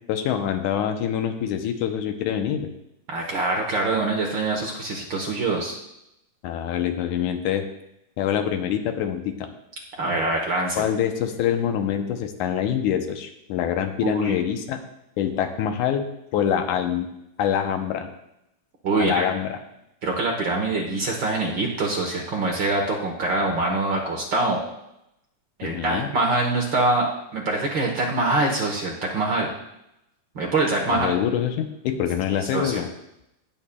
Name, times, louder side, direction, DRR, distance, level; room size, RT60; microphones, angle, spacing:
voice 1, 0.1-2.7 6.4-7.7 8.2-9.5 10.8-14.8 15.2-17.1 17.4-18.1 19.0-19.6 25.6-26.2 30.9-32.9, left 9 dB, 80° left, 7 dB, 2.2 m, -25 dB
voice 2, 3.1-5.8 10.0-10.8 14.0-14.3 18.8-19.2 20.0-24.6 25.6-29.5 30.3-31.1 32.5-32.8, right 2 dB, 65° right, 0 dB, 1.2 m, -24 dB
18.0 x 7.1 x 2.2 m, 0.83 s
omnidirectional pair, 3.6 m